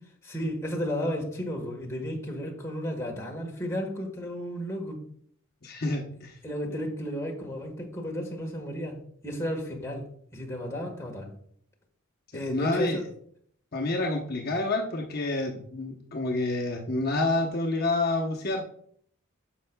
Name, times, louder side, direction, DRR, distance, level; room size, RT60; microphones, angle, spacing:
voice 1, 0.2-5.0 6.4-9.0 9.2-10.0 10.3-11.3 12.3-13.0, equal, 15° left, 0 dB, 1.3 m, -33 dB
voice 2, 5.6-6.4 12.3-13.0 13.7-18.6, left 2 dB, 45° left, 0 dB, 0.9 m, -28 dB
10.0 x 6.4 x 2.2 m, 0.62 s
head